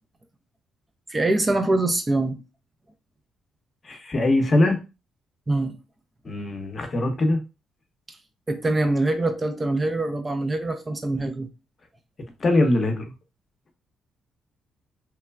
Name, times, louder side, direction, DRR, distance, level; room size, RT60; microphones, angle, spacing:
voice 1, 1.1-2.4 5.5-5.8 8.5-11.5, right 2 dB, 25° right, 0.4 m, -24 dB
voice 2, 3.8-4.8 6.2-7.4 12.4-13.1, left 2 dB, 40° left, 0.7 m, -22 dB
3.1 x 2.1 x 2.3 m
cardioid pair, 90°, 0 cm